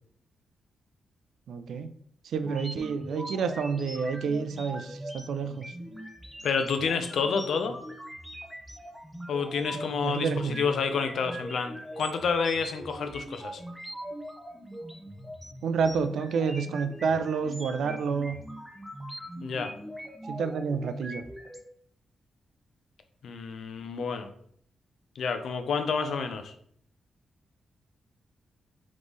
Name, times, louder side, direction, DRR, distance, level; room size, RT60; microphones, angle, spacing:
voice 1, 1.5-1.9 2.3-5.7 9.7-10.7 15.6-18.4 20.3-21.2, right 5 dB, 85° right, 10 dB, 0.4 m, -29 dB
sound 1, 2.4-21.6, right 1 dB, 5° right, 0.6 m, -42 dB
voice 2, 6.4-7.8 9.3-13.6 19.4-19.7 23.2-24.3 25.2-26.5, left 5 dB, 75° left, 8 dB, 0.5 m, -29 dB
3.6 x 3.1 x 3.9 m, 0.64 s
cardioid pair, 95°, 0 cm